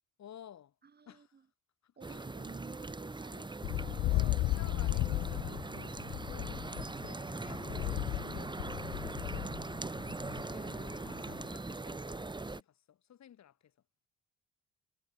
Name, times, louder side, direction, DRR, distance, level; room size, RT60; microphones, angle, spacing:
voice 1, 0.2-0.7 1.1-1.4 1.8-2.2 3.3-3.5 4.1-6.6 7.0-9.9 10.2-11.1 11.4-13.7, left 10 dB, 65° left, 4.3 m, -55 dB
voice 2, 0.8-1.4 2.0-3.5 3.8-4.3, right 6 dB, 35° right, 1.5 m, -53 dB
sound 1, 2.0-12.6, right 3 dB, 15° right, 1.5 m, -41 dB
sound 2, 3.6-11.5, left 18 dB, 85° left, 0.7 m, -35 dB
cardioid pair, 90°, 30 cm